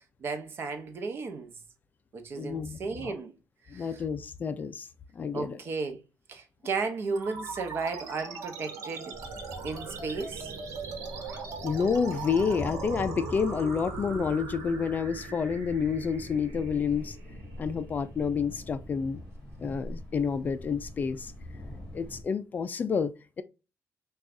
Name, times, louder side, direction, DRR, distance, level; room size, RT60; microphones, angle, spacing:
voice 1, 0.2-1.5 2.1-3.3 3.7-4.0 5.3-6.0 6.3-9.1 9.6-10.5, right 4 dB, 45° right, 0.8 m, -34 dB
voice 2, 2.3-3.1 3.7-4.9 5.2-5.6 11.6-17.2 17.6-19.2 19.6-21.3 21.9-23.4, left 6 dB, 35° left, 0.3 m, -29 dB
sound 1, 7.2-18.1, right 5 dB, 80° right, 1.1 m, -40 dB
Thunder, 9.1-22.2, left 1 dB, 5° left, 2.1 m, -43 dB
6.1 x 2.3 x 2.5 m
cardioid pair, 145°, 5 cm